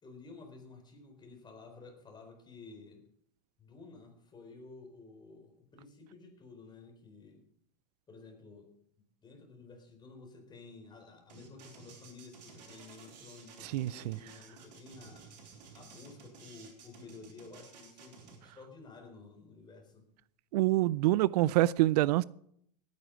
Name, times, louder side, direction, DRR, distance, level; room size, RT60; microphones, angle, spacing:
voice 1, 0.0-3.0 3.6-7.4 8.1-8.7 9.0-15.3 15.7-20.0, left 3 dB, 20° left, 4.2 m, -52 dB
sound 1, 11.3-18.4, right 5 dB, 85° right, 4.3 m, -54 dB
voice 2, 13.6-14.2 20.5-22.2, right 17 dB, 70° right, 0.4 m, -26 dB
18.0 x 9.4 x 5.1 m
supercardioid pair, 125°, 21 cm